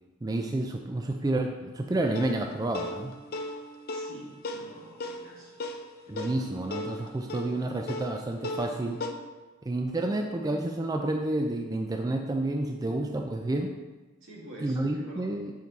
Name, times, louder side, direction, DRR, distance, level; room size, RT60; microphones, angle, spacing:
voice 1, 0.2-3.1 6.1-9.0 9.6-13.7 14.6-15.5, right 2 dB, 20° right, 3 dB, 0.3 m, -30 dB
sound 1, 2.2-9.1, left 2 dB, 50° left, 0.5 m, -37 dB
voice 2, 3.9-5.6 14.2-15.3, right 1 dB, 80° right, -4 dB, 2.0 m, -47 dB
7.2 x 4.5 x 4.0 m, 1.2 s
head